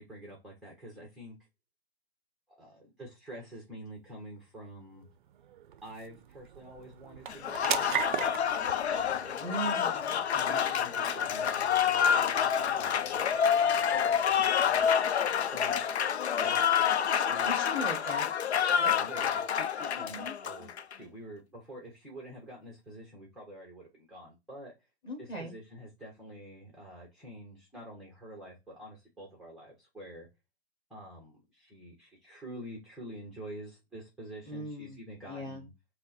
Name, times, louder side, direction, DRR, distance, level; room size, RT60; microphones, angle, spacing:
voice 1, 0.0-1.4 2.5-5.0 5.8-8.4 8.9-9.3 9.8-9.9 10.5-14.9 15.5-15.8 16.4-16.8 17.3-17.5 18.8-24.7 25.2-30.3 30.9-35.7, right 1 dB, ahead, -1 dB, 0.7 m, -47 dB
sound 1, 4.2-19.1, right 9 dB, 50° right, 0.5 m, -43 dB
Applause, 7.3-20.9, left 8 dB, 85° left, 0.6 m, -28 dB
voice 2, 9.4-10.6 17.4-18.3 18.7-18.9 20.1-20.3 25.0-25.5 34.5-35.0 35.3-35.6, equal, 15° left, -1 dB, 1.6 m, -39 dB
5.3 x 2.1 x 4.1 m, 0.24 s
hypercardioid pair, 145°, 32 cm